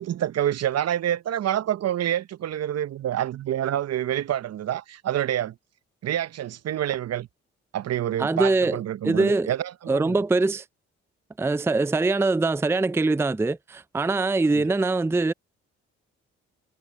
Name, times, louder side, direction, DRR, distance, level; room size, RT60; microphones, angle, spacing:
voice 1, 0.0-5.6 6.0-7.3 7.7-10.2 14.5-14.6, right 11 dB, 55° right, 0.8 m, -27 dB
voice 2, 8.2-8.8 9.0-9.5 9.9-10.6 11.4-15.3, right 3 dB, 10° right, 0.5 m, -23 dB
hypercardioid pair, 55°, 30 cm